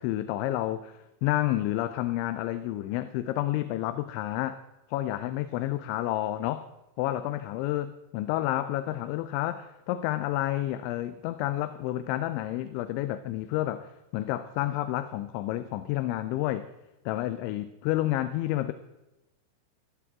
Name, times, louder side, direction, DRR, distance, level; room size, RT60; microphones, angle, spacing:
voice 1, 0.0-4.6 4.9-6.7 7.0-16.7 17.1-18.7, left 14 dB, 80° left, 12 dB, 2.9 m, -30 dB
16.5 x 14.5 x 3.7 m, 0.99 s
omnidirectional pair, 5.5 m